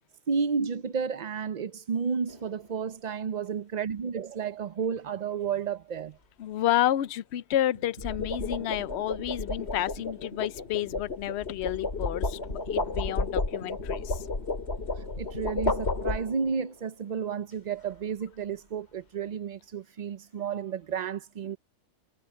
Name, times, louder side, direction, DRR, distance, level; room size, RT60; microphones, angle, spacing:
voice 1, 0.3-6.2 15.0-21.6, right 6 dB, 60° right, 0.4 m, -32 dB
sound 1, 2.3-2.6 7.7-16.6, left 3 dB, 45° left, 3.3 m, -32 dB
voice 2, 6.4-14.3, left 12 dB, 60° left, 0.7 m, -30 dB
omnidirectional pair, 1.5 m